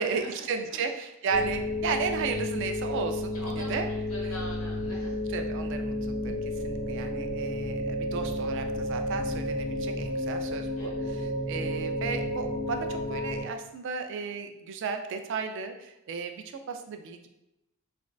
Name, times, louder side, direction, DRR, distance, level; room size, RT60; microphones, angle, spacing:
voice 1, 0.0-3.9 4.2-4.3 5.3-6.4 6.6-17.3, right 5 dB, 55° right, 6 dB, 0.3 m, -34 dB
sound 1, 1.3-13.4, left 1 dB, 30° left, 0.8 m, -32 dB
voice 2, 3.3-5.2 10.8-11.1, equal, 85° left, -3 dB, 1.0 m, -43 dB
3.3 x 2.4 x 2.2 m, 0.88 s
head